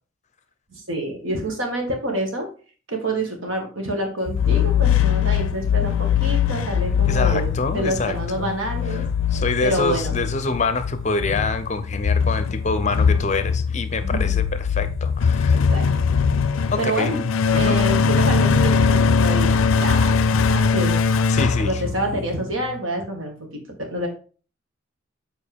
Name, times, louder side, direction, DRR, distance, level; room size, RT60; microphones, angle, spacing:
voice 1, 0.7-2.5 2.9-9.0 9.6-10.2 14.0-14.3 15.5-15.8 16.8-17.2 17.5-20.2 20.5-21.0 21.6-24.1, right 1 dB, 80° right, 1.7 m, -27 dB
sound 1, 4.3-22.4, left 6 dB, 85° left, 0.4 m, -21 dB
voice 2, 7.1-8.6 8.9-15.7 16.7-17.1 17.5-17.8 21.3-21.8, left 3 dB, 35° left, 0.5 m, -26 dB
7.3 x 4.3 x 3.5 m
head